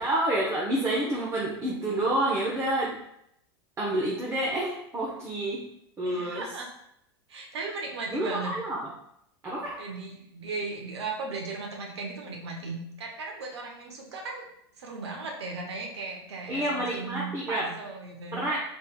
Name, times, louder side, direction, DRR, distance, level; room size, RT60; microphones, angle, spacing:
voice 1, 0.0-3.0 3.8-5.6 6.0-6.4 8.1-8.8 9.4-9.8 16.5-17.7 18.3-18.6, right 1 dB, 20° right, -4 dB, 0.8 m, -28 dB
voice 2, 6.0-6.7 7.3-8.5 9.8-14.5 14.8-18.4, right 3 dB, 85° right, 1 dB, 0.9 m, -37 dB
4.2 x 3.2 x 2.2 m, 0.75 s
hypercardioid pair, 100°, 14 cm